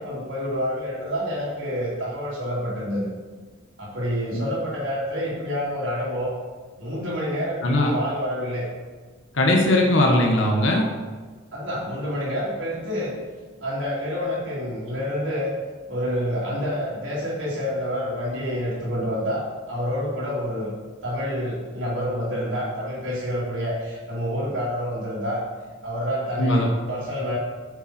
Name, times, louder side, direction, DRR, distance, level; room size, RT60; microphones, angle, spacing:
voice 1, 0.0-3.1 3.8-6.3 6.8-8.7 11.5-13.2 13.6-15.5 15.9-20.7 21.0-25.4 25.8-27.4, equal, 80° right, -10 dB, 2.8 m, -28 dB
voice 2, 7.6-7.9 9.3-10.8 26.4-26.7, left 1 dB, 80° left, 0 dB, 1.4 m, -19 dB
8.9 x 6.8 x 4.4 m, 1.4 s
head